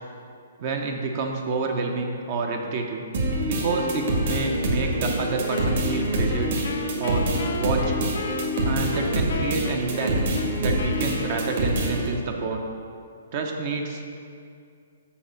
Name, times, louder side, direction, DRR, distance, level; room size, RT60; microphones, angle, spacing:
voice 1, 0.6-3.0 3.5-6.5 7.0-7.3 7.6-8.1 8.6-12.7 13.3-14.0, right 3 dB, 35° right, 2 dB, 0.8 m, -28 dB
sound 1, 3.1-12.1, right 1 dB, 50° right, 1.8 m, -26 dB
Wind instrument woodwind instrument, 5.5-12.1, left 7 dB, 55° left, 0.4 m, -36 dB
7.1 x 6.5 x 7.0 m, 2.4 s
hypercardioid pair, 165°, 0 cm